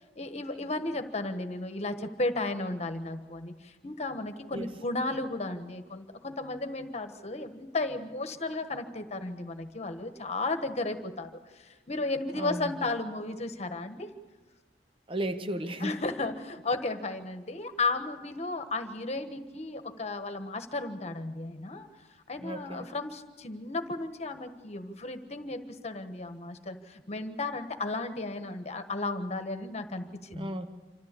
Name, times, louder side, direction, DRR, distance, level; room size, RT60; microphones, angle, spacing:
voice 1, 0.2-14.1 15.8-21.9 22.3-30.5, left 2 dB, 40° left, 8 dB, 1.4 m, -34 dB
voice 2, 12.3-12.9 15.1-15.9 22.4-22.9 30.3-30.7, right 1 dB, 30° right, 8 dB, 1.0 m, -34 dB
26.5 x 14.0 x 8.4 m, 1.3 s
head